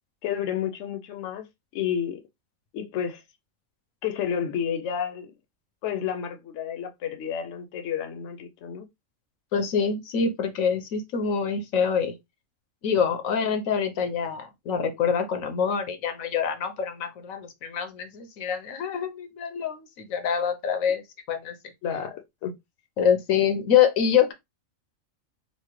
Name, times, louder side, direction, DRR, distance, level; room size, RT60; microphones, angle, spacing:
voice 1, 0.2-1.4 1.7-2.2 2.7-3.2 4.0-5.3 5.8-8.8 21.8-22.5, left 8 dB, 70° left, 0.9 m, -30 dB
voice 2, 9.5-12.1 12.8-21.5 23.0-24.3, left 7 dB, 85° left, 1.2 m, -25 dB
4.2 x 2.1 x 3.0 m
omnidirectional pair, 1.4 m